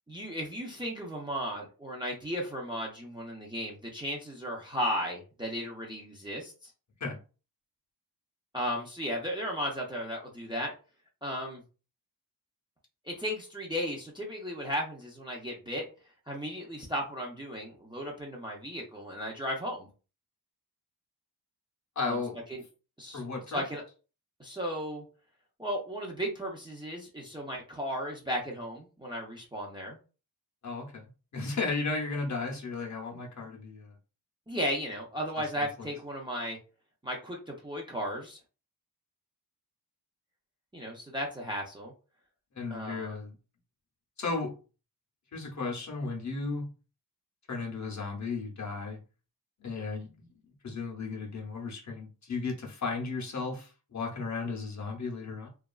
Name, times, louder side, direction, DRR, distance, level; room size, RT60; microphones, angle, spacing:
voice 1, 0.1-6.7 8.5-10.7 11.2-11.6 13.0-15.8 16.3-19.9 22.0-22.2 22.5-22.6 23.0-23.8 24.4-25.0 25.6-30.0 34.5-36.6 37.0-38.4 40.7-41.9 42.7-43.2, equal, 10° right, 0.5 m, -35 dB
voice 2, 22.0-22.4 23.1-23.6 30.6-31.0 31.3-33.9 42.5-43.3 44.2-44.5 45.3-46.7 47.5-49.0 49.6-50.3 50.6-55.5, left 4 dB, 45° left, 0.7 m, -34 dB
2.8 x 2.3 x 2.3 m
wide cardioid pair, 165°, 41 cm